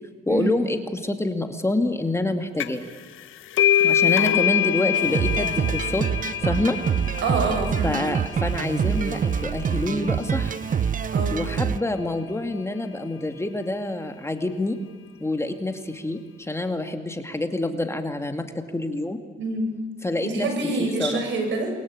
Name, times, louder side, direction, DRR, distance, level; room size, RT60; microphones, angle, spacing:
voice 1, 0.3-2.9 3.8-6.0 6.4-6.8 7.8-10.6 11.3-14.8 15.2-19.2 20.0-20.5 20.8-21.2, left 2 dB, 15° left, 6 dB, 2.4 m, -27 dB
sound 1, 2.6-2.9 3.2-10.5, left 10 dB, 80° left, 1.5 m, -25 dB
voice 2, 4.0-4.4 7.2-8.0 11.1-11.4 19.4-19.7 20.2-21.7, right 3 dB, 70° right, 4 dB, 6.9 m, -26 dB
sound 2, 4.9-11.8, right 7 dB, 40° right, 0.9 m, -26 dB
29.0 x 22.5 x 8.9 m, 1.5 s
cardioid pair, 90°, 20 cm